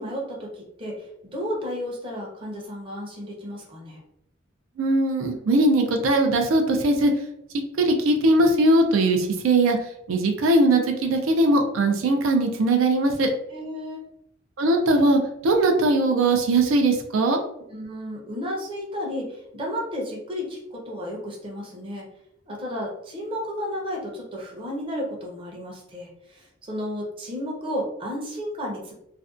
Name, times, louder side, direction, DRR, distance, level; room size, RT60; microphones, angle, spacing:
voice 1, 0.0-4.0 13.5-14.0 17.7-22.1 22.5-28.9, equal, 25° right, -2 dB, 0.6 m, -33 dB
voice 2, 4.8-7.1 7.8-9.8 10.1-13.3 14.6-17.4, right 2 dB, 90° right, 3 dB, 0.4 m, -20 dB
2.5 x 2.1 x 2.4 m, 0.79 s
head